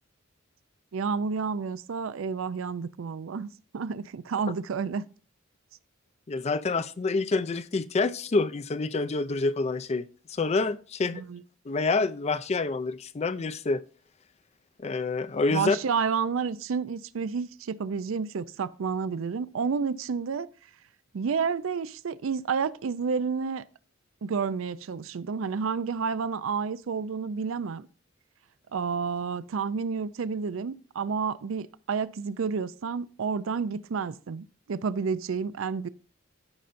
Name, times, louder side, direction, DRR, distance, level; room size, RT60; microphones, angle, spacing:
voice 1, 0.9-5.1 11.1-11.4 15.5-20.5 21.1-23.6 24.2-27.9 28.7-35.9, right 5 dB, 85° right, 0.4 m, -30 dB
voice 2, 6.3-11.2 11.7-13.8 14.8-15.8, left 3 dB, 35° left, 0.4 m, -27 dB
14.5 x 5.6 x 2.6 m
head